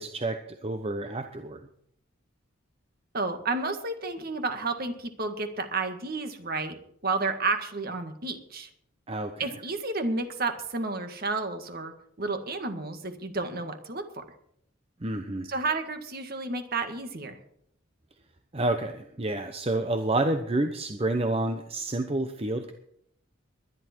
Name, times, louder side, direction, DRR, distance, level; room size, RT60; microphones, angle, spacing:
voice 1, 0.0-1.6 9.1-9.5 15.0-15.5 18.5-22.7, right 2 dB, 30° right, 7 dB, 0.9 m, -29 dB
voice 2, 3.1-6.8 7.0-8.7 9.4-11.9 12.2-14.2 15.5-17.4, right 3 dB, 50° right, 7 dB, 1.9 m, -31 dB
21.5 x 11.0 x 4.6 m, 0.70 s
head